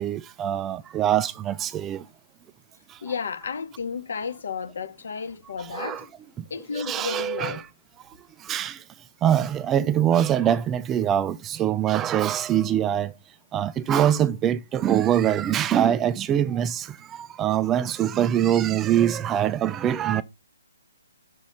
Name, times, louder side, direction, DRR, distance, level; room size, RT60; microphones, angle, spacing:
voice 1, 0.0-2.1 2.9-3.0 5.6-6.0 6.4-6.5 6.7-7.6 8.4-8.8 9.2-13.1 13.5-20.2, right 10 dB, 15° right, 0.4 m, -23 dB
voice 2, 3.0-6.1 6.5-7.6, left 5 dB, 55° left, 2.0 m, -32 dB
7.1 x 6.2 x 5.6 m
figure-of-eight pair, 135°, 0 cm